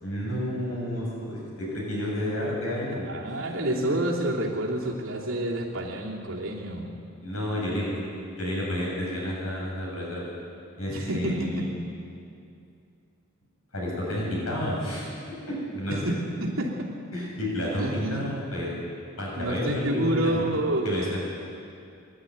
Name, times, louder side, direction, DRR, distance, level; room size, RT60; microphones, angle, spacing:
voice 1, 0.0-3.1 3.9-4.0 7.2-10.2 10.8-11.7 13.7-15.1 15.5-16.0 17.1-18.9 19.2-20.4 20.8-21.2, left 1 dB, 80° left, -4 dB, 7.2 m, -30 dB
voice 2, 3.1-6.9 10.8-11.7 15.9-16.9 17.8-18.3 19.3-21.2, right 1 dB, 70° right, -3 dB, 3.1 m, -29 dB
23.5 x 11.5 x 9.5 m, 2.5 s
head